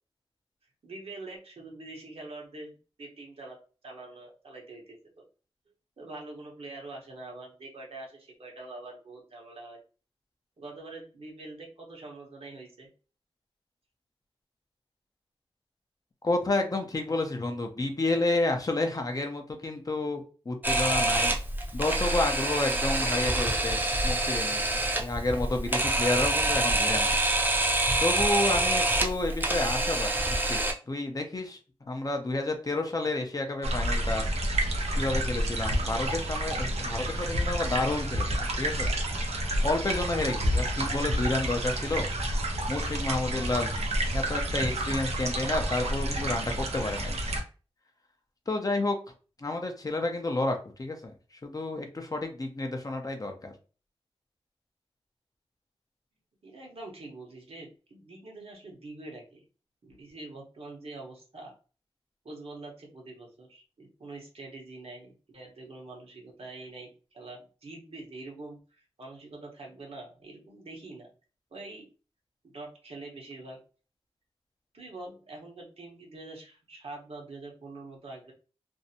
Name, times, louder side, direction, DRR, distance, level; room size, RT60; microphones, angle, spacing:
voice 1, 0.8-3.6 3.8-5.2 6.0-9.8 10.6-12.9 56.4-59.4 59.8-61.5 62.2-71.1 71.5-71.9 72.4-73.6 74.7-78.3, right 2 dB, 70° right, -1 dB, 0.9 m, -45 dB
voice 2, 16.2-21.4 21.7-24.6 25.0-27.1 28.0-31.6 31.9-34.3 35.0-38.9 39.6-42.1 42.7-43.7 44.1-47.2 48.5-49.0 49.4-51.1 51.4-53.5, left 2 dB, 35° left, 4 dB, 0.5 m, -30 dB
Camera, 20.6-30.7, right 1 dB, 20° right, 0.5 m, -26 dB
sound 1, 33.6-47.4, right 1 dB, 85° right, 0.6 m, -29 dB
2.6 x 2.1 x 2.7 m, 0.36 s
wide cardioid pair, 70°, 11 cm